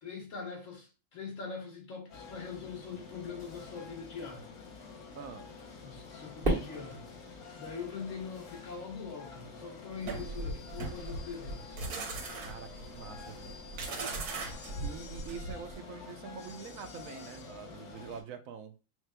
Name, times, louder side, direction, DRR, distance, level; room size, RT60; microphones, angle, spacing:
voice 1, 0.0-4.5 5.8-7.1 7.5-11.8, left 5 dB, 60° left, 1.5 m, -43 dB
sound 1, 2.1-18.2, left 5 dB, 85° left, 1.3 m, -48 dB
Fireworks, 6.4-8.8, right 2 dB, 40° right, 1.5 m, -35 dB
sound 2, 10.0-15.7, right 3 dB, 85° right, 1.3 m, -39 dB
voice 2, 12.4-13.6 14.8-18.7, right 6 dB, 70° right, 0.9 m, -45 dB
4.8 x 3.1 x 2.2 m
omnidirectional pair, 1.6 m